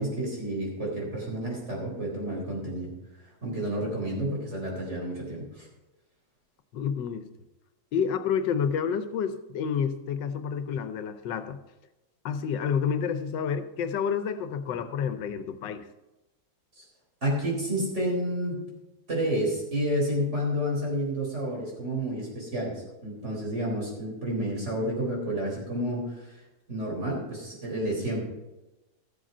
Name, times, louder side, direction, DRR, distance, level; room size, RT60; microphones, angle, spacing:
voice 1, 0.0-2.9 3.4-5.7 16.8-16.9 17.2-18.7 19.1-26.4 26.7-28.2, right 1 dB, 40° right, -2 dB, 4.3 m, -30 dB
voice 2, 6.7-7.3 7.9-11.6 12.2-15.9, left 7 dB, 80° left, 10 dB, 1.5 m, -29 dB
14.0 x 7.6 x 5.5 m, 1.0 s
omnidirectional pair, 1.9 m